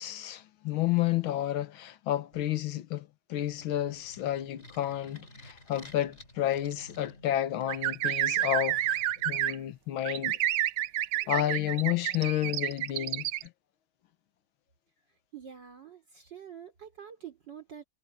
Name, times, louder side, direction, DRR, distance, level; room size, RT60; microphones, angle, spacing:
voice 1, 0.0-9.0 9.3-10.4 11.3-13.3, left 13 dB, 85° left, 1.8 m, -31 dB
sound 1, 3.5-9.7, left 1 dB, 30° left, 5.7 m, -53 dB
sound 2, 7.7-9.5 10.1-13.4, right 12 dB, 80° right, 1.6 m, -29 dB
voice 2, 15.3-17.8, right 8 dB, 60° right, 4.5 m, -46 dB
omnidirectional pair, 2.2 m